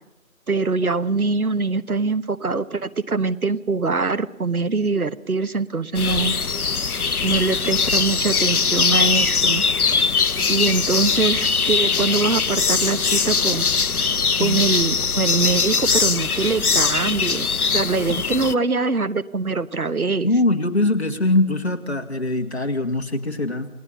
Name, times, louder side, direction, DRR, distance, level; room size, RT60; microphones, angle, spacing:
voice 1, 0.5-6.3 7.2-10.0 10.5-13.7 14.4-20.3, right 4 dB, 80° right, 15 dB, 1.1 m, -23 dB
sound 1, 5.9-18.5, left 5 dB, 85° left, 0.7 m, -21 dB
voice 2, 20.2-23.7, left 2 dB, 50° left, 5 dB, 1.9 m, -22 dB
29.0 x 18.5 x 5.6 m, 1.0 s
figure-of-eight pair, 170°, 43 cm